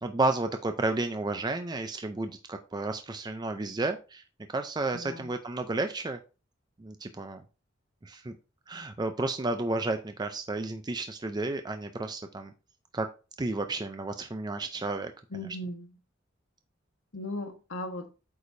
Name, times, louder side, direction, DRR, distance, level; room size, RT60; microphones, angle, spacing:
voice 1, 0.0-4.2 4.5-6.2 6.8-7.4 8.0-8.4 8.7-12.5 12.9-13.1 13.4-15.5, right 2 dB, 20° right, 0.5 m, -32 dB
voice 2, 4.9-5.3 15.3-15.9 17.1-18.1, left 1 dB, 85° left, 1.3 m, -37 dB
8.2 x 4.9 x 2.7 m
head